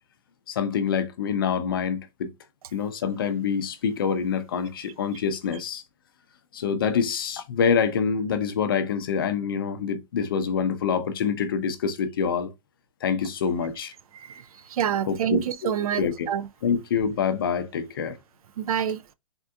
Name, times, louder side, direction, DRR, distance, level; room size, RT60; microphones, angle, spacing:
voice 1, 0.5-2.3 2.7-5.8 6.5-12.5 13.0-13.9 15.1-15.7 16.0-16.3 16.6-18.2, left 6 dB, 40° left, 0.4 m, -26 dB
voice 2, 14.1-14.4 14.7-16.5 18.6-19.0, right 9 dB, 80° right, 0.4 m, -27 dB
3.6 x 2.5 x 2.2 m
hypercardioid pair, 175°, 18 cm